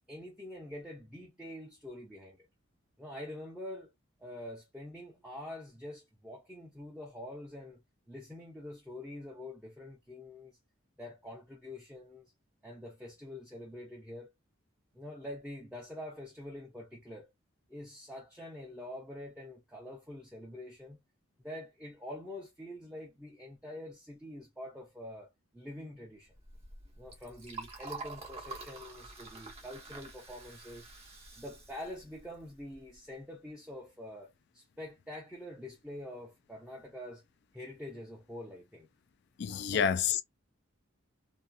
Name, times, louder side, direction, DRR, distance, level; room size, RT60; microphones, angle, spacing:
voice 1, 0.1-2.4 3.0-3.9 4.2-10.6 11.0-12.3 12.6-14.3 14.9-17.3 17.7-21.0 21.4-26.3 27.0-30.9 31.4-37.2 37.5-38.9 39.7-39.9, left 1 dB, 5° right, 0.7 m, -46 dB
Liquid, 26.3-33.0, right 3 dB, 30° right, 0.9 m, -47 dB
voice 2, 39.4-40.2, left 8 dB, 55° left, 0.3 m, -28 dB
2.8 x 2.4 x 2.3 m
head